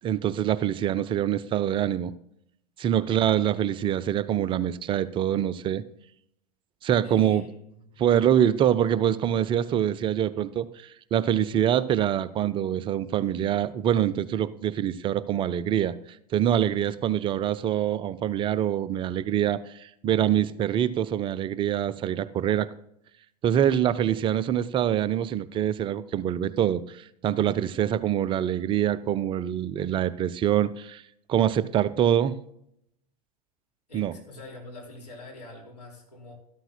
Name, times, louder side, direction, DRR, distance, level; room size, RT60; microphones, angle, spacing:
voice 1, 0.0-2.1 2.8-5.8 6.8-7.4 8.0-15.9 16.3-22.7 23.4-31.0 31.3-32.4 33.9-34.1, right 10 dB, 25° right, 16 dB, 0.4 m, -25 dB
voice 2, 7.0-8.0 33.9-36.3, left 2 dB, 80° left, -2 dB, 3.8 m, -44 dB
13.0 x 13.0 x 2.2 m, 0.72 s
figure-of-eight pair, 85°, 20 cm